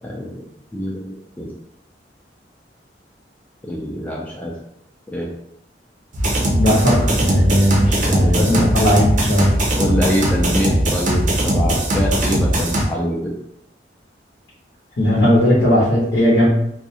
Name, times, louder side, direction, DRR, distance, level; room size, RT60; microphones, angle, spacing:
voice 1, 0.0-0.4 0.7-1.5 3.6-4.5 5.1-5.3 7.8-8.7 9.7-13.3, equal, 10° left, -3 dB, 0.3 m, -24 dB
sound 1, 6.1-12.8, right 1 dB, 45° right, 0.5 m, -19 dB
voice 2, 6.6-9.5 15.0-16.5, equal, 70° left, -6 dB, 0.7 m, -16 dB
2.3 x 2.1 x 2.7 m, 0.75 s
head